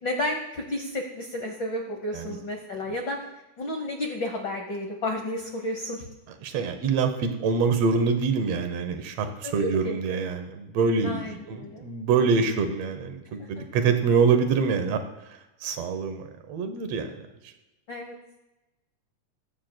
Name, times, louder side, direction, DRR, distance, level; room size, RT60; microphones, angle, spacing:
voice 1, 0.0-3.2 3.6-6.1 9.4-10.0 11.0-11.8 13.4-13.5 17.9-18.1, left 1 dB, 90° left, 2 dB, 1.0 m, -32 dB
voice 2, 6.4-15.0 15.6-17.2, right 5 dB, 65° right, 7 dB, 1.8 m, -25 dB
20.5 x 8.8 x 2.3 m, 1.0 s
omnidirectional pair, 3.8 m